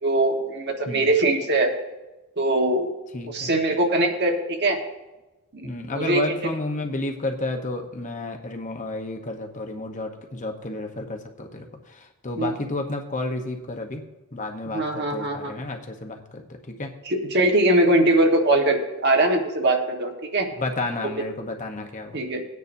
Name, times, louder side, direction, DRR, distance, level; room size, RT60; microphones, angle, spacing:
voice 1, 0.0-1.7 2.4-2.9 3.3-4.8 5.5-6.2 12.4-12.5 14.7-15.5 17.1-20.5 22.1-22.4, right 2 dB, 50° right, 2 dB, 1.5 m, -21 dB
voice 2, 3.1-3.5 5.6-14.0 14.3-16.9 20.6-22.2, left 2 dB, 35° left, 3 dB, 1.0 m, -31 dB
18.5 x 9.3 x 2.7 m, 1.1 s
head